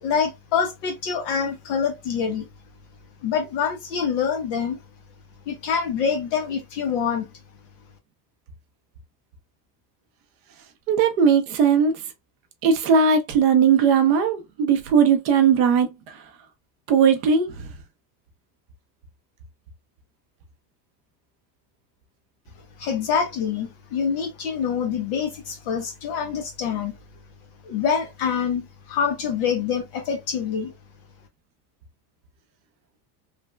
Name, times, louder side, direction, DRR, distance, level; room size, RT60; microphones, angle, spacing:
voice 1, 0.0-2.5 3.2-4.8 5.5-7.3 22.8-27.0 27.6-30.7, left 7 dB, 40° left, 0.4 m, -25 dB
voice 2, 10.9-11.9 12.6-15.9 16.9-17.5, right 6 dB, 45° right, 0.5 m, -18 dB
3.2 x 2.1 x 2.2 m
supercardioid pair, 175°, 47 cm